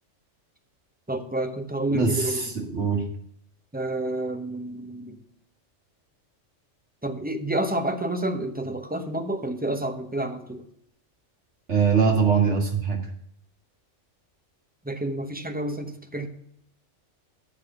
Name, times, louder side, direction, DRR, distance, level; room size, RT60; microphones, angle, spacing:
voice 1, 1.1-2.4 3.7-5.2 7.0-10.6 14.8-16.3, right 1 dB, 10° right, 5 dB, 0.8 m, -29 dB
voice 2, 1.9-3.0 11.7-13.0, right 6 dB, 65° right, 1 dB, 2.2 m, -22 dB
8.5 x 5.8 x 6.7 m, 0.70 s
omnidirectional pair, 1.2 m